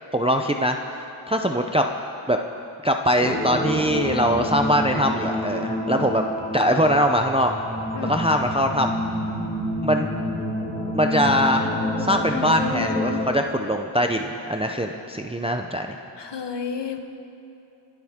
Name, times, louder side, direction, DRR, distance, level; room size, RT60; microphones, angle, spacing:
voice 1, 0.1-1.9 2.3-2.4 2.8-6.2 6.5-7.5 8.1-8.9 9.8-10.1 10.9-11.7 12.0-16.0, equal, 10° right, 4 dB, 0.6 m, -22 dB
sound 1, 3.2-13.2, left 1 dB, 15° left, 2.9 m, -28 dB
voice 2, 16.2-17.0, left 5 dB, 60° left, 6 dB, 1.2 m, -31 dB
26.0 x 12.0 x 3.6 m, 2.9 s
wide cardioid pair, 105°, 47 cm